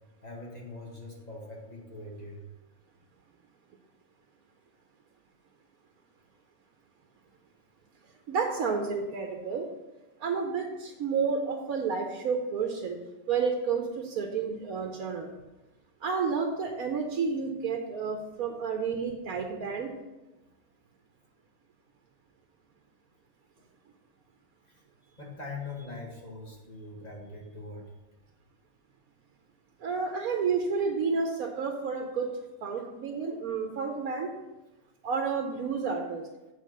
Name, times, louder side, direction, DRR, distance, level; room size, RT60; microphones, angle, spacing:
voice 1, 0.2-2.4 24.7-27.9, left 3 dB, 30° left, -2 dB, 2.0 m, -42 dB
voice 2, 8.3-9.7 10.2-13.0 13.3-15.3 16.0-19.9 29.8-32.3 32.6-34.3 35.0-36.3, right 5 dB, 90° right, 3 dB, 1.3 m, -30 dB
8.5 x 4.4 x 6.3 m, 1.1 s
omnidirectional pair, 1.5 m